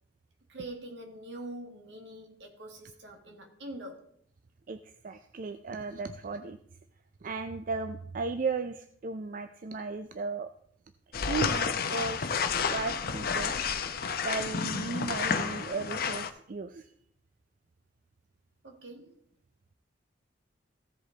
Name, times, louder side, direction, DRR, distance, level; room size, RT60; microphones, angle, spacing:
voice 1, 0.5-4.1 18.6-19.2, right 1 dB, 75° right, 1.8 m, -44 dB
voice 2, 5.0-6.6 7.2-10.5 11.3-12.2 12.7-13.7 14.2-16.9, right 4 dB, 50° right, 0.4 m, -35 dB
sound 1, 11.1-16.3, left 6 dB, 55° left, 0.7 m, -30 dB
15.0 x 5.1 x 3.9 m
head